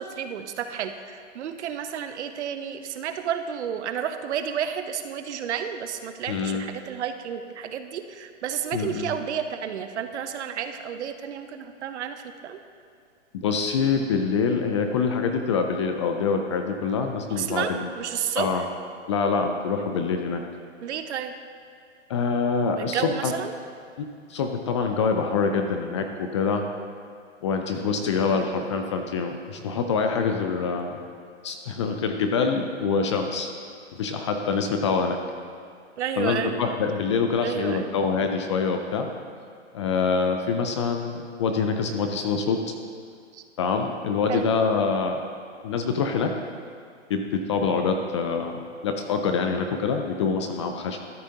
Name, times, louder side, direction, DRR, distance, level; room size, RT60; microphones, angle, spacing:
voice 1, 0.0-12.6 17.3-18.6 20.8-21.3 22.8-23.5 27.8-28.0 28.3-28.5 36.0-36.6 37.4-37.9 43.3-43.4 44.3-44.5, right 8 dB, 65° right, 8 dB, 0.8 m, -31 dB
voice 2, 6.3-6.6 8.7-9.1 13.3-17.9 18.4-18.7 19.1-20.4 22.1-23.3 24.0-26.6 27.4-31.0 31.4-33.5 33.9-35.2 36.2-39.1 39.7-42.6 43.6-45.2 45.6-46.3 47.1-51.0, left 5 dB, 25° left, 5 dB, 0.3 m, -25 dB
13.0 x 8.2 x 2.8 m, 2.2 s
hypercardioid pair, 135°, 37 cm